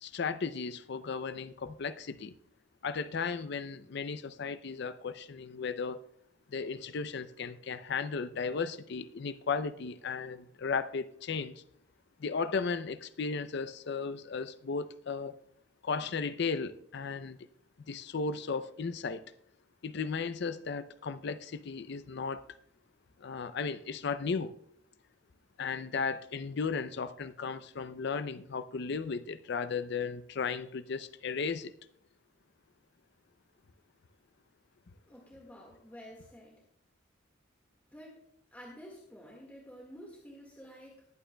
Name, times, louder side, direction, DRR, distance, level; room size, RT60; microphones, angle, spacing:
voice 1, 0.0-2.3 2.8-6.0 6.5-11.6 12.2-15.4 15.8-17.4 17.9-19.2 19.8-22.4 23.2-24.5 25.6-31.7, left 5 dB, 60° left, 0.5 m, -35 dB
voice 2, 35.1-36.6 37.9-38.2 38.5-41.1, equal, 10° left, 1.7 m, -50 dB
20.5 x 8.8 x 2.2 m
head